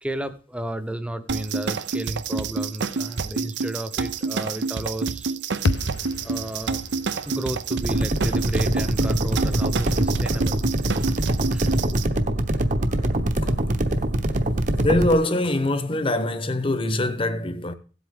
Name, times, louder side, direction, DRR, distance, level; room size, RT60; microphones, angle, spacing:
voice 1, 0.0-5.3 6.2-6.8 7.2-10.6 11.5-12.0, right 1 dB, 5° right, 0.8 m, -33 dB
sound 1, 1.3-12.0, right 4 dB, 85° right, 0.7 m, -28 dB
sound 2, 5.6-9.9, left 3 dB, 75° left, 0.7 m, -32 dB
sound 3, 7.8-15.1, right 1 dB, 45° right, 1.0 m, -23 dB
voice 2, 14.8-17.7, left 1 dB, 30° left, 0.9 m, -23 dB
16.5 x 8.1 x 3.7 m
head